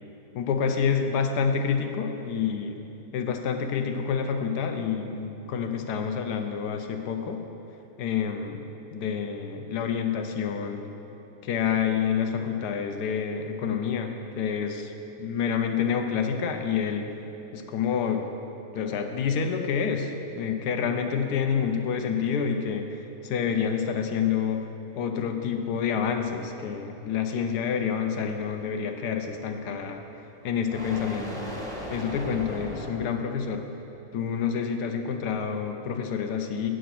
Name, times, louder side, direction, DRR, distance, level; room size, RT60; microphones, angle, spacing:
voice 1, 0.3-2.8 3.1-7.4 8.0-8.6 8.9-10.8 11.4-14.8 15.2-17.1 17.5-18.2 18.7-24.7 24.9-30.0 30.4-31.5 31.9-33.6 34.1-36.7, left 7 dB, 90° left, 5 dB, 1.2 m, -28 dB
sound 1, 25.9-33.1, equal, 5° left, 0.6 m, -39 dB
7.9 x 5.1 x 5.8 m, 3.0 s
omnidirectional pair, 1.7 m